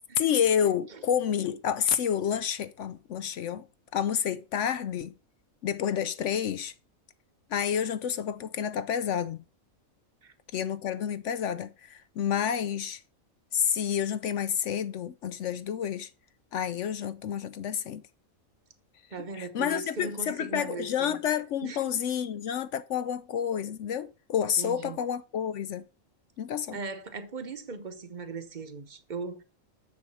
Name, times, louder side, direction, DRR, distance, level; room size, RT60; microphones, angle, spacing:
voice 1, 0.2-3.6 3.9-5.1 5.6-6.7 7.5-9.4 10.5-13.0 13.5-16.1 16.5-18.0 19.3-25.8 26.4-26.8, left 8 dB, 70° left, 0.8 m, -29 dB
voice 2, 19.1-21.2 21.6-22.0 24.6-25.0 26.7-29.4, right 4 dB, 35° right, 1.0 m, -38 dB
7.0 x 7.0 x 5.5 m
omnidirectional pair, 1.4 m